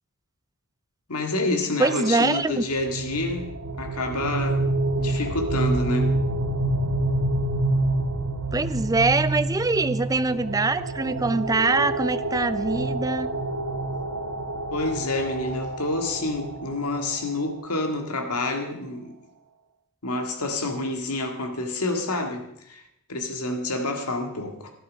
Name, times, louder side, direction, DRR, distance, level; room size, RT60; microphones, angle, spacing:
voice 1, 1.1-4.7 5.0-6.2 14.7-19.2 20.0-22.8 23.1-24.7, left 2 dB, 85° left, 4 dB, 1.9 m, -28 dB
voice 2, 1.8-2.6 8.5-13.3, right 3 dB, 15° right, 14 dB, 0.4 m, -23 dB
sound 1, 2.6-17.5, right 2 dB, 60° right, 1.1 m, -27 dB
12.5 x 12.0 x 5.2 m, 0.76 s
head